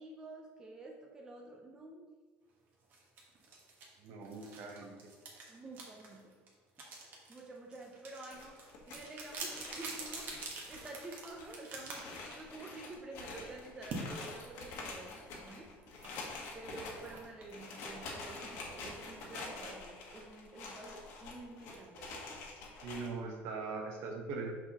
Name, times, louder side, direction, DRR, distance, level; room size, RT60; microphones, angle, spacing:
voice 1, 0.0-2.1 5.5-6.4 7.3-8.6 8.9-15.7 16.5-22.4, right 2 dB, 15° right, 0 dB, 0.6 m, -50 dB
sound 1, 2.9-12.8 13.9-14.1 15.3-19.2, right 3 dB, 40° right, 1.2 m, -47 dB
voice 2, 4.0-5.0 22.8-24.6, right 4 dB, 60° right, 3 dB, 0.9 m, -41 dB
sound 2, 8.3-10.8 11.0-11.1 11.4-11.5 11.9-23.1, left 3 dB, 65° left, 1.3 m, -46 dB
6.0 x 6.0 x 2.9 m, 1.4 s
cardioid pair, 170°, 5 cm